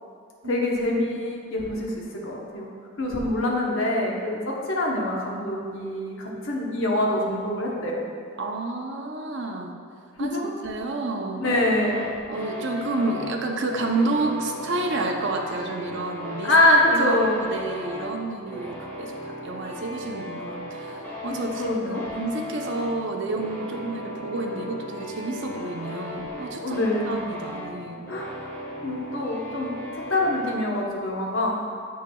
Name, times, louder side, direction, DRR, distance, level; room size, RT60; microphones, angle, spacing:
voice 1, 0.4-1.9 2.2-2.7 3.0-8.0 10.2-10.5 11.4-12.1 16.4-17.4 21.3-22.0 26.6-27.2 28.1-28.3 28.8-31.7, left 1 dB, 75° left, -2 dB, 1.0 m, -24 dB
voice 2, 8.4-9.8 10.2-11.4 12.3-16.5 16.9-26.8 27.1-28.1, right 2 dB, 65° right, 2 dB, 0.7 m, -30 dB
sound 1, 11.4-30.6, left 1 dB, 10° left, 1.3 m, -37 dB
7.8 x 6.3 x 2.3 m, 2.2 s
head